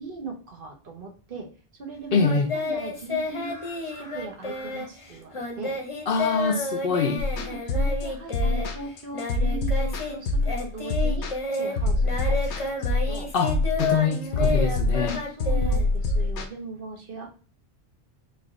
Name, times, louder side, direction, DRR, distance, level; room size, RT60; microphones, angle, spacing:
voice 1, 0.0-1.5 1.8-3.6 3.8-5.7 7.3-13.3 14.3-14.9 15.3-17.3, right 4 dB, 55° right, 1.0 m, -39 dB
voice 2, 2.1-2.5 6.1-7.3 13.3-15.2, left 5 dB, 65° left, 0.7 m, -24 dB
Singing, 2.2-10.2 10.4-16.3, left 3 dB, 35° left, 0.7 m, -31 dB
sound 1, 7.2-16.5, left 2 dB, 90° left, 1.0 m, -25 dB
4.5 x 2.5 x 3.0 m
omnidirectional pair, 1.1 m